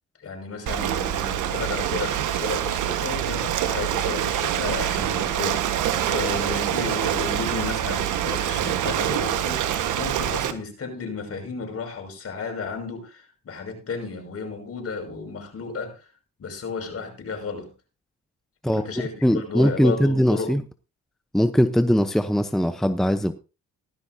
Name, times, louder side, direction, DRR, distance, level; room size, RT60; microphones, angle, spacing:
voice 1, 0.2-16.0 16.4-17.7 18.7-20.6, left 4 dB, 50° left, 5.9 m, -33 dB
Ocean, 0.7-10.5, right 10 dB, 80° right, 1.5 m, -25 dB
voice 2, 19.2-20.6 21.3-23.3, equal, ahead, 0.8 m, -20 dB
16.5 x 13.5 x 2.7 m
cardioid pair, 90°, 30 cm